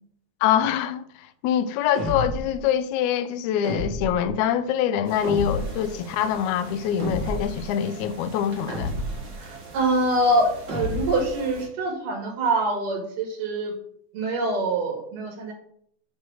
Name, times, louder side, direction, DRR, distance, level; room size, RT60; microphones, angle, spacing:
voice 1, 0.4-1.0 1.4-8.9, left 9 dB, 80° left, 1.8 m, -24 dB
sound 1, 1.9-2.6 3.6-4.3 5.2-5.9 7.0-7.6 8.7-9.4 10.7-11.3, equal, 45° right, 1.7 m, -30 dB
sound 2, 5.0-11.7, right 3 dB, 60° right, 3.3 m, -43 dB
voice 2, 9.4-13.7 14.1-15.5, right 2 dB, 85° right, 3.8 m, -25 dB
9.4 x 3.2 x 6.1 m
omnidirectional pair, 3.7 m